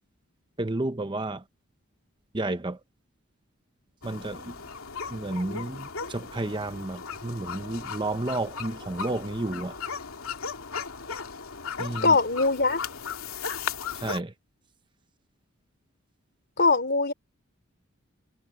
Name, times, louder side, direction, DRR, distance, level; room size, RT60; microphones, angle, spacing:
voice 1, 0.6-1.4 2.3-2.8 4.0-4.6 5.1-9.7 11.8-12.2 13.9-14.3, right 2 dB, 20° right, 0.7 m, -31 dB
sound 1, 4.0-14.2, left 6 dB, 80° left, 2.7 m, -37 dB
voice 2, 12.0-12.8 16.6-17.1, left 3 dB, 50° left, 3.5 m, -21 dB
head